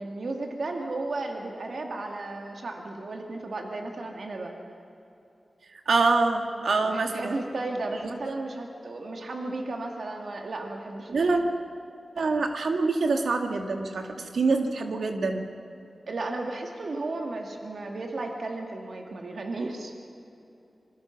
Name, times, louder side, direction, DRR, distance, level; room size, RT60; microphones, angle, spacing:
voice 1, 0.0-4.6 6.8-11.6 16.1-19.9, right 2 dB, 70° right, 2 dB, 2.5 m, -34 dB
voice 2, 5.9-7.3 11.1-11.4 12.2-15.5, right 3 dB, 90° right, 4 dB, 2.1 m, -25 dB
26.5 x 23.0 x 6.2 m, 2.9 s
wide cardioid pair, 65°, 0 cm